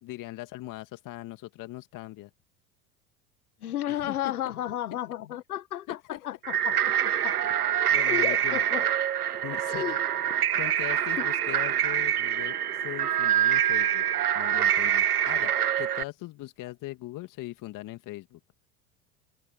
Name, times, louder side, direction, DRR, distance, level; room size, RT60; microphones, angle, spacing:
voice 1, 0.0-2.3 3.9-4.3 4.9-5.0 5.9-6.2 7.4-7.5 7.9-8.6 9.4-10.0 10.5-14.0 14.3-15.5 15.8-18.4, left 17 dB, 45° left, 2.1 m, -40 dB
voice 2, 3.6-6.8 7.2-7.4 8.1-8.8 9.7-10.0 11.2-11.3, left 12 dB, 75° left, 1.7 m, -33 dB
sound 1, 6.4-16.0, right 10 dB, 85° right, 0.7 m, -25 dB
figure-of-eight pair, 75°, 45 cm